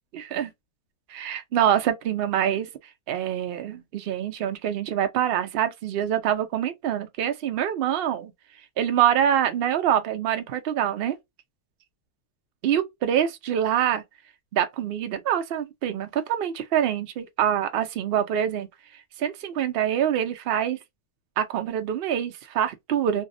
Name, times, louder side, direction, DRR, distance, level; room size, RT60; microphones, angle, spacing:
voice 1, 0.1-0.5 1.1-2.7 3.1-8.3 8.8-11.2 12.6-14.0 14.5-18.7 19.2-20.8 21.4-23.2, right 10 dB, 85° right, 0.5 m, -25 dB
3.3 x 2.0 x 2.5 m
omnidirectional pair, 1.6 m